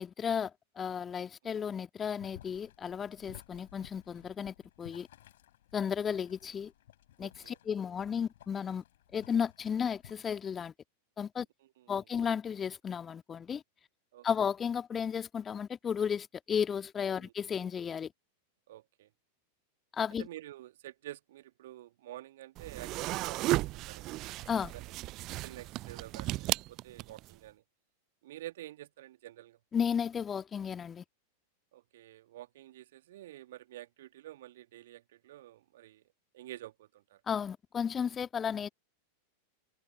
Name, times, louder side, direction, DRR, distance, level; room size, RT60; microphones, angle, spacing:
voice 1, 0.0-5.1 5.7-6.7 7.2-8.8 9.1-10.7 11.2-11.5 11.9-13.6 14.2-18.1 19.9-20.3 24.5-24.7 29.7-31.0 37.3-38.7, left 7 dB, 20° left, 1.9 m, -34 dB
Boiling, 2.2-10.1, left 13 dB, 60° left, 7.1 m, -56 dB
voice 2, 7.2-7.6 11.8-12.0 14.1-14.3 17.2-17.3 18.7-19.1 20.2-24.3 24.7-24.8 25.4-27.6 28.2-29.6 31.7-36.0 36.3-37.2, right 14 dB, 55° right, 2.0 m, -49 dB
sound 1, 22.6-27.3, right 18 dB, 40° right, 0.4 m, -35 dB
figure-of-eight pair, 90°, 0 cm